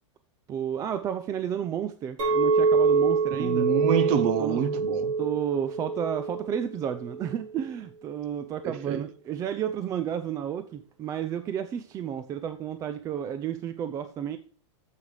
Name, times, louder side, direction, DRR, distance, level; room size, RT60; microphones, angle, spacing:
voice 1, 0.5-3.7 4.4-4.6 5.2-14.4, right 9 dB, 20° right, 0.4 m, -32 dB
Chink clink, 2.2-7.4, right 4 dB, 90° right, 3.4 m, -26 dB
voice 2, 3.4-5.1 8.6-9.0, right 8 dB, 45° right, 0.8 m, -27 dB
10.0 x 7.4 x 3.3 m
supercardioid pair, 145°, 16 cm